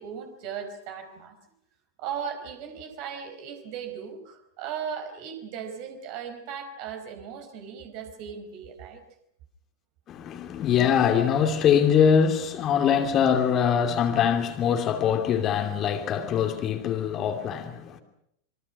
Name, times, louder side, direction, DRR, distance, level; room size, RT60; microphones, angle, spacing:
voice 1, 0.0-1.4 2.0-9.0, right 7 dB, 45° right, 4.7 m, -37 dB
voice 2, 10.1-18.0, left 8 dB, 30° left, 2.8 m, -23 dB
26.5 x 24.0 x 6.1 m
figure-of-eight pair, 90°, 0 cm